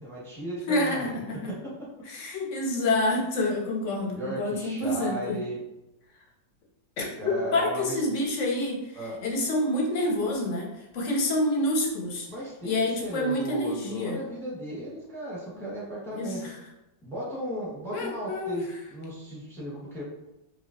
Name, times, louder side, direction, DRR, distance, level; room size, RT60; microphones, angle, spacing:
voice 1, 0.0-1.9 4.1-5.6 7.2-8.0 8.9-9.2 12.3-12.7 13.0-16.5 17.0-20.0, right 1 dB, ahead, -7 dB, 0.8 m, -36 dB
voice 2, 0.7-1.5 2.1-5.4 7.0-7.1 7.5-8.8 9.2-12.3 12.6-14.2 16.1-16.5 17.9-18.6, left 1 dB, 60° left, -1 dB, 0.8 m, -27 dB
5.5 x 2.1 x 2.5 m, 0.93 s
omnidirectional pair, 2.0 m